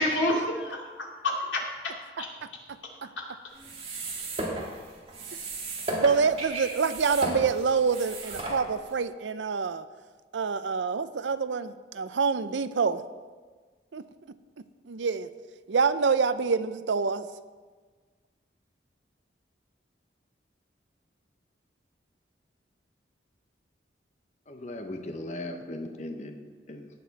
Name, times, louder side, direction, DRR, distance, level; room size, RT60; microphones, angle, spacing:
voice 1, 0.0-1.9 2.2-2.3, left 1 dB, 90° left, -1 dB, 2.4 m, -29 dB
sound 1, 3.5-9.0, right 2 dB, 30° right, 1.9 m, -35 dB
voice 2, 5.9-9.9 10.3-13.0 13.9-14.0 14.9-15.3 15.7-17.3, right 5 dB, 80° right, 13 dB, 0.5 m, -26 dB
voice 3, 24.5-26.9, left 1 dB, 40° left, 5 dB, 0.7 m, -38 dB
17.5 x 6.8 x 4.1 m, 1.4 s
head